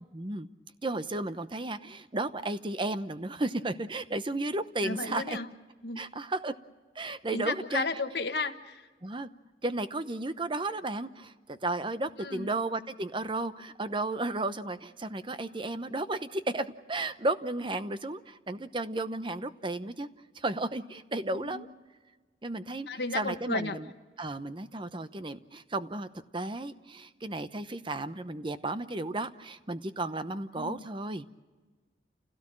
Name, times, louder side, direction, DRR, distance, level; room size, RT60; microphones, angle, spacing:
voice 1, 0.1-0.5 0.8-5.4 6.0-6.5 6.9-7.9 9.0-9.3 9.6-20.1 20.3-21.7 22.4-22.9 23.1-23.9 24.2-26.1 26.3-31.2, right 2 dB, 30° right, 12 dB, 0.8 m, -33 dB
voice 2, 4.8-5.5 5.8-6.0 7.3-8.9 12.2-12.5 21.3-21.6 22.9-23.8 30.6-30.9, left 3 dB, 65° left, 8 dB, 1.4 m, -33 dB
29.0 x 17.0 x 7.6 m, 1.4 s
head